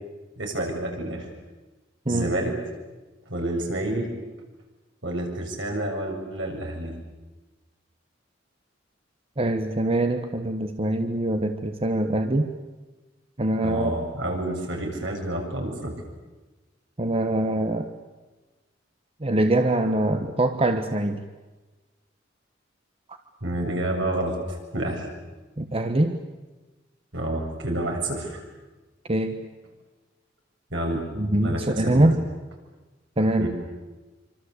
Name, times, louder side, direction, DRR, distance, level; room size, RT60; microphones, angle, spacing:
voice 1, 0.4-1.3 2.1-2.5 3.3-4.1 5.0-6.9 13.6-15.9 23.4-25.1 27.1-28.4 30.7-31.0 31.4-32.1 33.4-33.5, right 1 dB, 70° right, 1 dB, 7.1 m, -29 dB
voice 2, 9.4-12.5 13.4-13.9 17.0-17.9 19.2-21.2 25.6-26.2 29.1-29.5 31.2-32.3 33.2-33.5, right 1 dB, 30° right, 7 dB, 1.3 m, -23 dB
26.5 x 25.5 x 8.2 m, 1.2 s
head